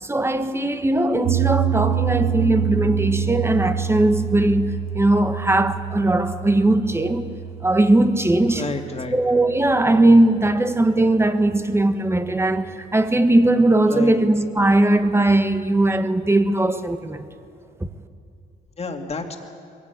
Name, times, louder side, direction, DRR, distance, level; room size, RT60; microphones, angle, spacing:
voice 1, 0.0-7.3 7.6-8.6 9.1-17.3, right 2 dB, 10° right, 1.4 m, -19 dB
sound 1, 1.2-11.5, right 8 dB, 75° right, 1.0 m, -27 dB
voice 2, 8.5-9.4 13.9-14.2 18.8-19.4, left 3 dB, 30° left, 2.6 m, -30 dB
22.0 x 16.5 x 9.5 m
cardioid pair, 90°, 20 cm